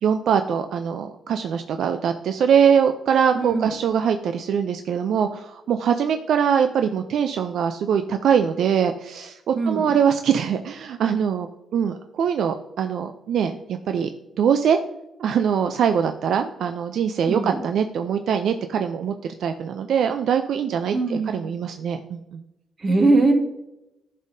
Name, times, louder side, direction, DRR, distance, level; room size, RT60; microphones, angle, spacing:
voice 1, 0.0-14.1 14.4-14.8 15.2-22.4, right 7 dB, 75° right, 7 dB, 0.4 m, -22 dB
voice 2, 3.3-3.7 9.5-9.9 17.3-17.7 20.9-21.4 22.8-23.3, right 3 dB, 40° right, 4 dB, 1.5 m, -21 dB
9.7 x 5.4 x 2.6 m, 0.89 s
cardioid pair, 70°, 0 cm